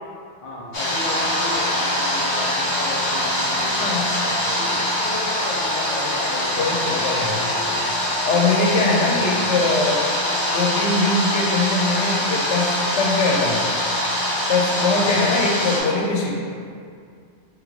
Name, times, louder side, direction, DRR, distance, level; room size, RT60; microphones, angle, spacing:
voice 1, 0.4-4.0 4.2-7.2 7.5-8.0 9.0-9.5 14.9-15.2, left 2 dB, 40° left, -5 dB, 0.5 m, -35 dB
sound 1, 0.7-15.8, left 1 dB, 60° left, 1.1 m, -23 dB
voice 2, 3.8-4.2 6.6-7.4 8.3-10.0 10.5-13.6 14.5-16.3, left 3 dB, 80° left, -1 dB, 0.9 m, -22 dB
sound 2, 5.6-11.5, equal, 25° right, 1.4 m, -41 dB
3.7 x 3.3 x 3.1 m, 2.2 s
omnidirectional pair, 1.2 m